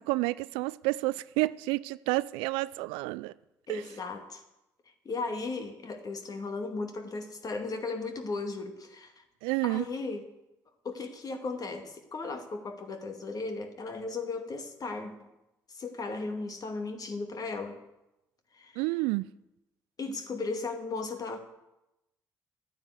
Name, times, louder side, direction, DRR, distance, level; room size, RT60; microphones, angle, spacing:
voice 1, 0.0-3.3 3.7-3.8 9.4-9.9 18.8-19.3, right 21 dB, 75° right, 0.4 m, -30 dB
voice 2, 3.7-4.4 5.0-9.2 9.6-10.3 10.8-15.1 15.7-17.8 18.5-18.9 20.0-21.4, left 3 dB, 40° left, 2.3 m, -36 dB
12.0 x 9.4 x 8.3 m
hypercardioid pair, 50°, 9 cm